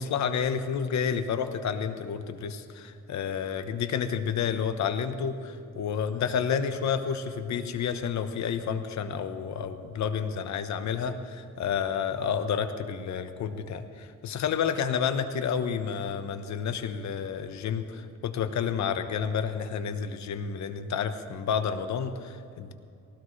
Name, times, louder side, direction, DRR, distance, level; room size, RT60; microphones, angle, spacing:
voice 1, 0.0-22.7, left 7 dB, 65° left, 9 dB, 1.1 m, -30 dB
19.0 x 17.0 x 3.3 m, 2.5 s
cardioid pair, 90°, 30 cm